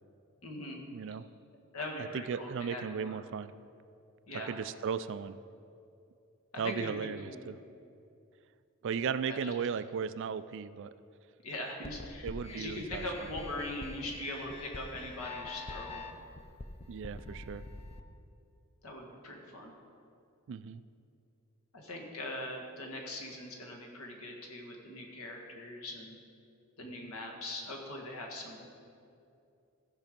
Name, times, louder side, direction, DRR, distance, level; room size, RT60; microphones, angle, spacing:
voice 1, 0.4-0.8 1.7-3.2 4.3-4.6 6.5-7.4 9.3-9.5 11.4-16.1 18.8-19.7 21.7-26.2 26.8-28.7, left 1 dB, 75° left, 1 dB, 1.7 m, -41 dB
voice 2, 0.9-1.2 2.0-3.5 4.3-5.4 6.6-7.6 8.8-10.9 12.2-13.0 16.9-17.6 20.5-20.8, right 6 dB, 60° right, 14 dB, 0.3 m, -36 dB
sound 1, 11.8-18.0, left 3 dB, 30° left, 0.6 m, -45 dB
15.0 x 5.5 x 5.2 m, 2.6 s
head